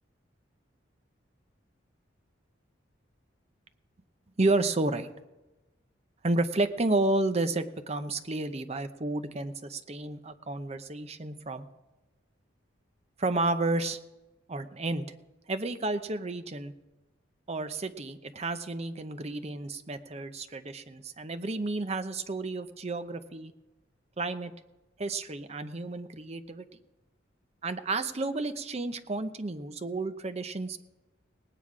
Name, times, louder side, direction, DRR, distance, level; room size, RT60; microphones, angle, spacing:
voice 1, 4.4-5.1 6.2-11.7 13.2-14.0 14.5-15.1 15.5-16.7 17.5-23.5 24.2-24.5 25.0-26.7 27.6-30.8, right 2 dB, 35° right, 10 dB, 0.7 m, -31 dB
19.0 x 9.4 x 4.9 m, 1.1 s
head